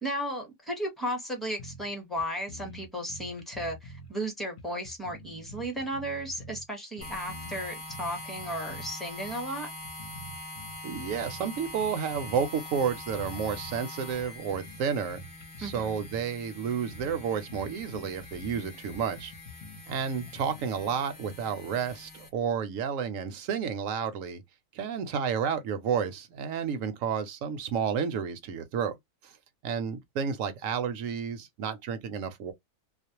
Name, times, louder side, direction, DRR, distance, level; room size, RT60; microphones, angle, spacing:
voice 1, 0.0-9.7 15.6-16.0, equal, ahead, 0.7 m, -35 dB
sound 1, 1.6-2.2 2.5-4.1 4.6-6.7 7.0-8.9 9.2-9.4 9.8-11.5 11.8-12.4 12.7-13.8 14.2-16.2 16.6-16.7 16.9-17.2 17.5-20.8, left 2 dB, 60° left, 0.8 m, -47 dB
sound 2, 7.0-22.3, left 2 dB, 25° left, 1.0 m, -44 dB
voice 2, 10.8-15.2 15.6-19.3 19.9-24.4 24.7-28.9 29.2-29.3 29.6-32.5, right 7 dB, 75° right, 1.0 m, -31 dB
2.5 x 2.0 x 2.7 m
omnidirectional pair, 1.4 m